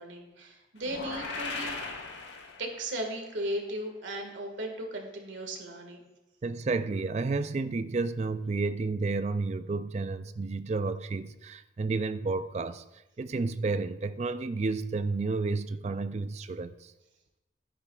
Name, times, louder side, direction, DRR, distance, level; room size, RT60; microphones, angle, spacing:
voice 1, 0.0-1.8 2.6-6.0, right 1 dB, 75° right, 1.8 m, -36 dB
sound 1, 0.8-3.0, left 3 dB, 70° left, 1.3 m, -38 dB
voice 2, 6.4-12.8 13.2-16.9, right 3 dB, 35° right, 0.3 m, -31 dB
12.5 x 9.9 x 2.4 m
head